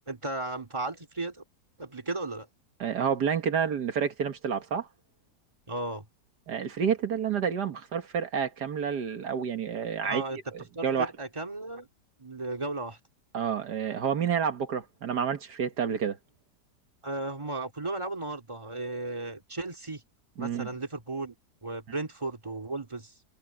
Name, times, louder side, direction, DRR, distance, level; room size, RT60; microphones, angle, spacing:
voice 1, 0.1-1.4 1.8-2.5 5.7-6.0 10.0-10.4 10.7-11.9 12.2-13.0 17.0-20.0 20.4-21.3 21.6-23.1, right 2 dB, 15° right, 2.5 m, -35 dB
voice 2, 2.8-4.9 6.5-10.2 10.5-11.1 13.3-16.2 20.4-20.7, right 7 dB, 75° right, 2.0 m, -29 dB
omnidirectional pair, 1.8 m